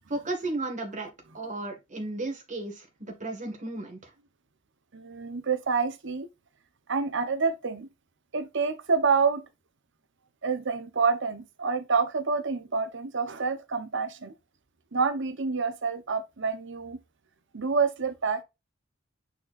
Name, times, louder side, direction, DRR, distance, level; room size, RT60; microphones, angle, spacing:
voice 1, 0.1-1.1 1.3-4.1, right 2 dB, 40° right, 1.9 m, -34 dB
voice 2, 4.9-6.3 6.9-7.9 8.3-9.4 10.4-14.3 14.9-17.0 17.5-18.4, right 5 dB, 60° right, 1.0 m, -27 dB
8.6 x 4.4 x 2.6 m
head